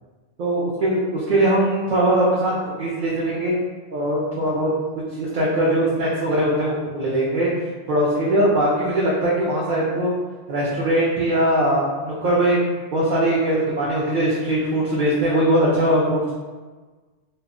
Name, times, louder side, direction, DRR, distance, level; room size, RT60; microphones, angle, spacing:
voice 1, 0.4-3.6 3.9-4.7 5.2-7.5 7.9-10.1 10.5-12.6 12.9-16.3, right 1 dB, 60° right, -6 dB, 0.6 m, -21 dB
2.2 x 2.0 x 3.5 m, 1.4 s
omnidirectional pair, 1.1 m